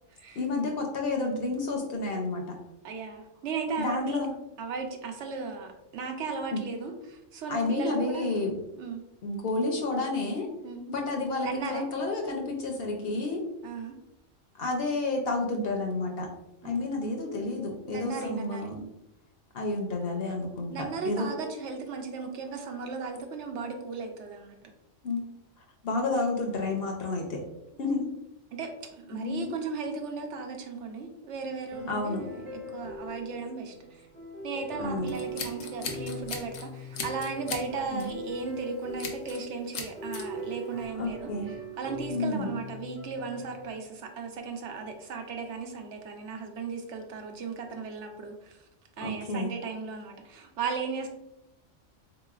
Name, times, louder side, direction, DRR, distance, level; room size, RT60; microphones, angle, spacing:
voice 1, 0.4-2.6 3.8-4.3 6.5-6.6 7.5-8.6 9.2-10.5 10.9-13.4 14.6-16.3 16.6-18.9 19.5-21.3 25.0-25.2 25.8-27.4 27.8-28.1 29.1-29.5 31.9-32.2 34.8-35.1 37.9-38.1 41.0-41.5 42.1-42.6 49.0-49.5, left 3 dB, 60° left, 1 dB, 0.7 m, -30 dB
voice 2, 2.8-4.2 4.6-9.0 10.6-10.8 11.4-11.9 13.6-14.0 16.6-16.9 17.9-18.8 20.7-24.5 28.5-28.7 29.0-34.0 34.4-41.3 41.8-48.6 49.0-51.1, right 4 dB, 70° right, 4 dB, 0.9 m, -36 dB
sound 1, 31.7-43.7, equal, 35° right, 0.9 m, -41 dB
Scissors, 35.1-36.6 36.9-37.7 38.0-38.2 39.0-39.4 39.7-40.2, left 5 dB, 80° left, 1.0 m, -37 dB
4.0 x 2.9 x 2.3 m, 0.88 s
omnidirectional pair, 1.3 m